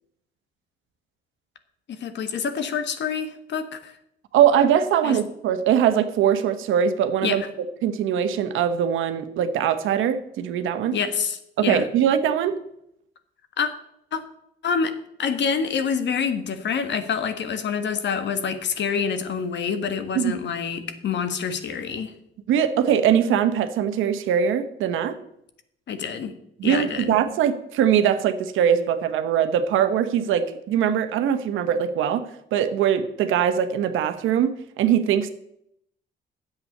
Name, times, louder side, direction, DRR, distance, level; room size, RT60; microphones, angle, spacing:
voice 1, 1.9-3.9 5.0-5.2 7.2-7.4 10.9-11.8 13.6-13.7 14.1-14.2 14.6-14.9 15.2-22.1 25.9-26.3 26.6-27.2, left 6 dB, 65° left, 9 dB, 1.5 m, -27 dB
voice 2, 4.3-7.4 7.8-11.0 11.6-12.6 20.1-20.3 22.5-25.2 26.6-32.2 32.5-35.3, right 9 dB, 85° right, 9 dB, 1.2 m, -21 dB
10.0 x 8.0 x 6.6 m, 0.75 s
cardioid pair, 90°, 20 cm